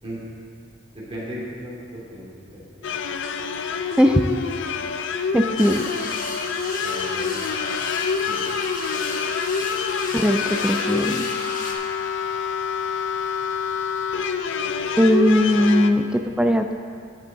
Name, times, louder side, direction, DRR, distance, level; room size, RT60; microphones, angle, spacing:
voice 1, 0.9-2.9 6.8-7.4 8.2-8.4, equal, 25° right, -7 dB, 2.5 m, -36 dB
sound 1, 2.8-15.9, left 6 dB, 60° left, 0.4 m, -27 dB
voice 2, 5.3-5.8 10.1-11.3 15.0-16.7, equal, 5° right, 5 dB, 0.3 m, -19 dB
sound 2, 5.6-11.7, left 3 dB, 40° left, 1.0 m, -32 dB
16.5 x 6.0 x 3.9 m, 2.2 s
head